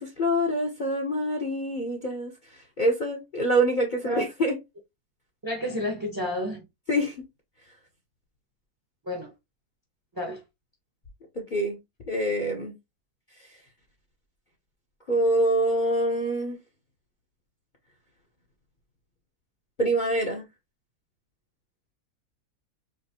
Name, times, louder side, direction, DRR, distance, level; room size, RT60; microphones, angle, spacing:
voice 1, 0.0-2.3 2.8-4.6 6.9-7.1 11.4-11.8 12.1-12.7 15.1-16.6 19.8-20.4, right 1 dB, 40° left, 0.7 m, -25 dB
voice 2, 5.4-6.6 9.1-9.3 10.1-10.4, left 1 dB, 20° right, 0.7 m, -31 dB
4.8 x 2.0 x 2.7 m
omnidirectional pair, 1.7 m